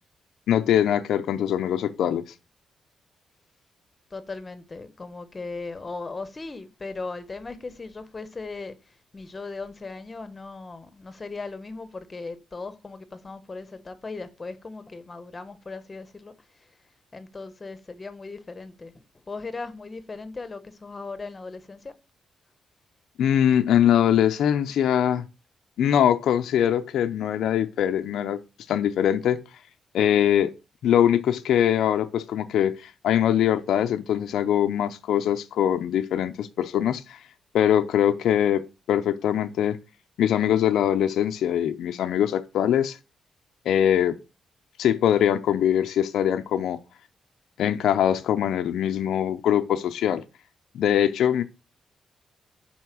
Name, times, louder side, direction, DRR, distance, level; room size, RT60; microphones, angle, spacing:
voice 1, 0.5-2.2 23.2-25.2 25.8-28.4 28.7-29.4 29.9-30.5 30.8-37.2 37.5-39.8 40.2-43.0 43.7-44.2 44.8-46.8 47.6-50.2 50.7-51.4, left 10 dB, 80° left, 0.5 m, -22 dB
voice 2, 4.1-16.7 17.1-18.9 19.3-21.9, left 3 dB, 30° left, 1.1 m, -38 dB
5.5 x 4.3 x 6.0 m
cardioid pair, 80°, 0 cm